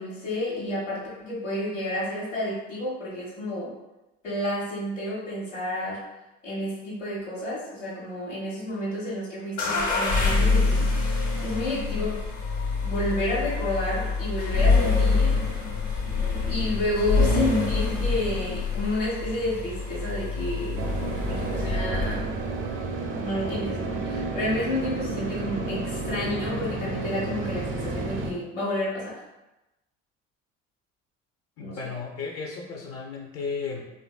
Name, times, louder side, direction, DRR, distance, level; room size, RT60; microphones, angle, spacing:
voice 1, 0.0-3.7 4.2-6.0 6.4-12.2 12.8-15.4 16.5-20.8 21.3-22.4 23.1-29.2 31.6-31.9, left 1 dB, 85° left, -8 dB, 1.1 m, -30 dB
sound 1, 9.6-22.4, left 4 dB, 65° left, 0.9 m, -26 dB
sound 2, 20.8-28.3, right 3 dB, 35° right, 0.4 m, -31 dB
voice 2, 31.6-33.9, left 5 dB, 45° left, 0 dB, 0.6 m, -34 dB
3.1 x 2.5 x 2.3 m, 0.98 s
figure-of-eight pair, 50°, 37 cm